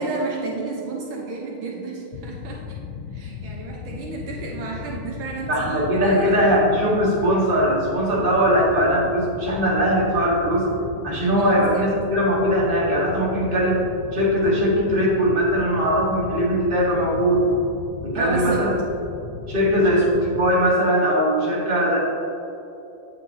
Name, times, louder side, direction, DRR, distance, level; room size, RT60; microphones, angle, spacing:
voice 1, 0.0-2.8 3.1-6.6 11.4-11.9 18.1-18.8, right 3 dB, 75° right, -2 dB, 1.6 m, -31 dB
sound 1, 2.1-20.5, left 6 dB, 80° left, 1.4 m, -36 dB
voice 2, 5.5-10.7 11.0-13.9 14.1-17.4 18.0-18.7 19.5-22.0, equal, 25° right, -6 dB, 1.9 m, -20 dB
9.3 x 7.9 x 2.8 m, 2.9 s
omnidirectional pair, 2.2 m